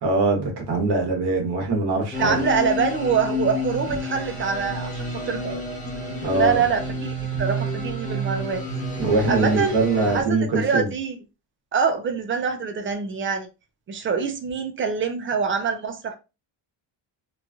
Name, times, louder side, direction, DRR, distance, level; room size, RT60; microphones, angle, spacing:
voice 1, 0.0-2.4 6.2-6.6 9.0-10.9, right 3 dB, 55° right, 1.2 m, -22 dB
sound 1, 2.1-10.2, equal, 15° left, 0.7 m, -30 dB
voice 2, 2.2-5.6 6.3-8.6 9.3-9.8 10.1-11.2 11.7-13.5 13.9-16.2, right 6 dB, 30° right, 0.3 m, -25 dB
3.1 x 2.5 x 2.3 m
cardioid pair, 170°, 46 cm